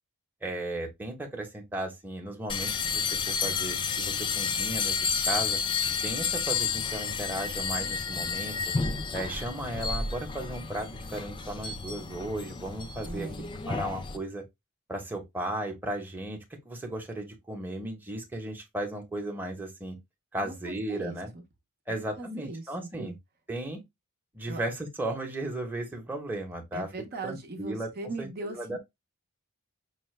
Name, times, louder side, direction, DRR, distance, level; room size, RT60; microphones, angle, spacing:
voice 1, 0.4-5.0 5.3-5.6 6.0-8.7 9.1-13.3 13.7-14.4 14.9-20.0 20.3-21.3 21.9-23.2 23.5-23.8 24.3-26.9 27.2-27.9 28.2-28.8, right 1 dB, 10° right, 0.9 m, -35 dB
sound 1, 2.5-14.2, left 5 dB, 20° left, 0.3 m, -31 dB
voice 2, 13.1-13.5 20.3-21.4 21.9-23.2 24.5-24.6 26.7-28.8, right 2 dB, 45° right, 0.7 m, -39 dB
5.5 x 2.1 x 3.1 m
head